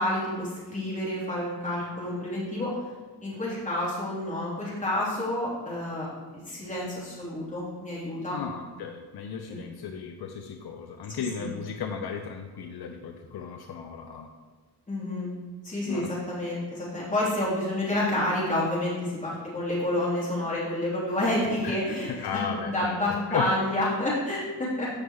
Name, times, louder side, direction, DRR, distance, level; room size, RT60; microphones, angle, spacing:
voice 1, 0.0-2.8 3.2-8.4 9.5-9.6 11.2-11.5 14.9-15.3 15.6-24.9, left 1 dB, 20° left, -8 dB, 3.1 m, -29 dB
voice 2, 8.3-14.3 15.9-16.1 21.6-21.8 22.2-22.9 23.3-23.4, left 6 dB, 70° left, 4 dB, 0.7 m, -35 dB
14.0 x 6.3 x 3.1 m, 1.4 s
wide cardioid pair, 170°, 39 cm